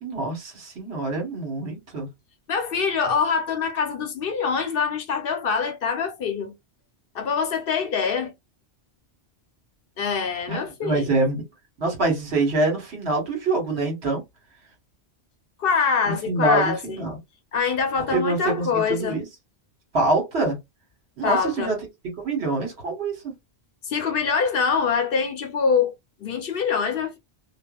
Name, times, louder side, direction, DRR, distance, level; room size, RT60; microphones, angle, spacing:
voice 1, 0.0-2.1 10.5-11.4 11.8-14.2 16.0-17.2 18.1-19.2 19.9-20.6 21.2-21.8 22.2-23.3, right 2 dB, 75° right, 1.4 m, -25 dB
voice 2, 2.5-6.5 7.1-8.3 10.0-11.1 15.6-17.0 17.5-19.2 21.2-21.7 23.8-25.9 26.2-27.2, left 5 dB, 60° left, 0.7 m, -24 dB
2.5 x 2.2 x 2.2 m
omnidirectional pair, 1.1 m